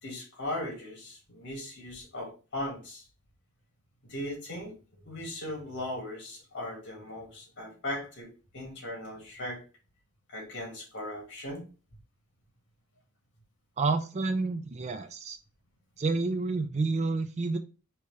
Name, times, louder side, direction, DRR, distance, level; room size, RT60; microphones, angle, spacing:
voice 1, 0.0-3.1 4.0-4.7 5.0-9.6 10.3-11.7, left 1 dB, 55° left, 0 dB, 2.0 m, -38 dB
voice 2, 13.8-15.4 16.0-17.6, right 3 dB, 30° right, 9 dB, 0.3 m, -29 dB
4.6 x 2.9 x 3.3 m, 0.34 s
head